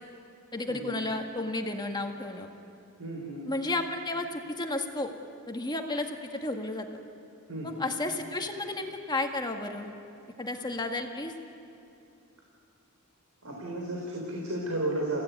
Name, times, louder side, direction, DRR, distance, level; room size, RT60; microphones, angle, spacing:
voice 1, 0.5-2.5 3.5-5.1 5.5-6.9 7.6-9.9 10.4-11.3, left 2 dB, 20° left, 3 dB, 1.8 m, -32 dB
voice 2, 3.0-3.5 7.5-7.9 13.4-15.2, right 2 dB, 85° right, -2 dB, 4.1 m, -33 dB
30.0 x 16.5 x 9.6 m, 2.7 s
head